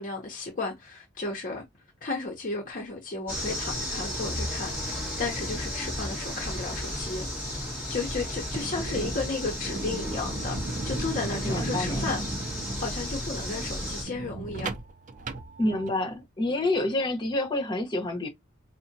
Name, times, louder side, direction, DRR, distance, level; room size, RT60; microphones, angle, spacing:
voice 1, 0.0-1.6 2.0-7.3 7.5-12.2 12.8-14.7, left 3 dB, 40° left, 0.8 m, -34 dB
sound 1, 3.3-14.0, left 1 dB, 10° right, 1.8 m, -34 dB
sound 2, 8.3-16.2, right 2 dB, 40° right, 0.4 m, -36 dB
voice 2, 11.4-12.2 15.6-18.3, left 2 dB, 25° left, 1.2 m, -28 dB
4.7 x 2.1 x 2.7 m
head